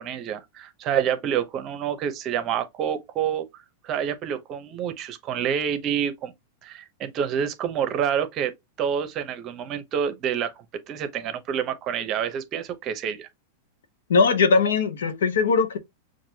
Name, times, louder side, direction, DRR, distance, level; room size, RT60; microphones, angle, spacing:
voice 1, 0.0-6.3 6.6-8.5 8.8-13.3, right 8 dB, 35° right, 0.8 m, -28 dB
voice 2, 14.1-15.8, left 5 dB, 85° left, 0.9 m, -20 dB
5.9 x 2.6 x 2.8 m
hypercardioid pair, 125°, 0 cm